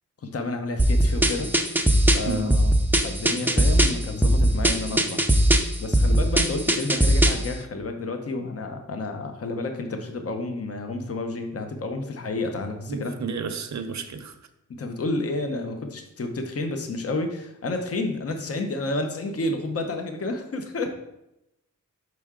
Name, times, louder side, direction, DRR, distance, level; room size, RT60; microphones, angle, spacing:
voice 1, 0.2-1.8 2.1-2.7 3.0-5.2 5.8-13.2 14.7-21.0, left 2 dB, 45° left, 0.7 m, -30 dB
sound 1, 0.8-7.5, right 1 dB, 5° right, 0.5 m, -20 dB
voice 2, 2.2-2.7 12.9-14.4, right 4 dB, 60° right, 0.6 m, -31 dB
6.0 x 4.6 x 3.6 m
wide cardioid pair, 90°, 33 cm